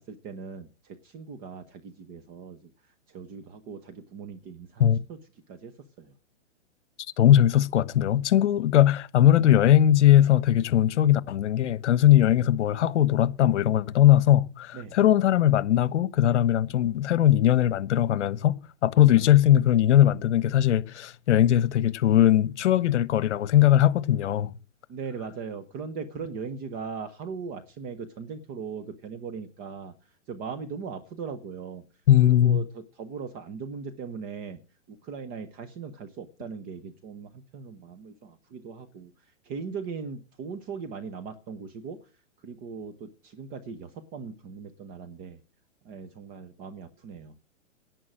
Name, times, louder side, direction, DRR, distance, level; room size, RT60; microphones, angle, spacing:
voice 1, 0.0-2.7 3.1-5.2 5.5-6.1 14.7-15.0 24.9-29.9 30.3-31.8 32.2-34.6 34.9-39.1 39.4-42.1 42.4-45.4 45.8-47.4, right 5 dB, 25° right, 0.9 m, -39 dB
voice 2, 7.2-24.5 32.1-32.6, left 12 dB, 65° left, 1.1 m, -20 dB
11.0 x 9.4 x 7.6 m
hypercardioid pair, 150°, 38 cm